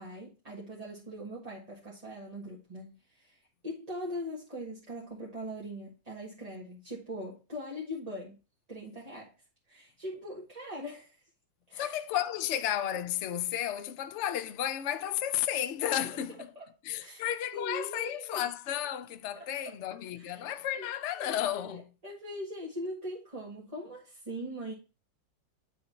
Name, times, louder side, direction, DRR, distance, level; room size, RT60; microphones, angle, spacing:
voice 1, 0.0-8.4 8.7-9.3 9.7-11.2 11.7-12.0 16.0-16.2 16.5-16.7 17.0-18.4 19.3-19.8 20.2-20.5 20.7-20.9 21.2-24.7, equal, 20° right, 1.4 m, -41 dB
voice 2, 11.8-16.5 16.8-21.9, left 11 dB, 85° left, 0.6 m, -33 dB
9.6 x 3.6 x 4.2 m
omnidirectional pair, 2.0 m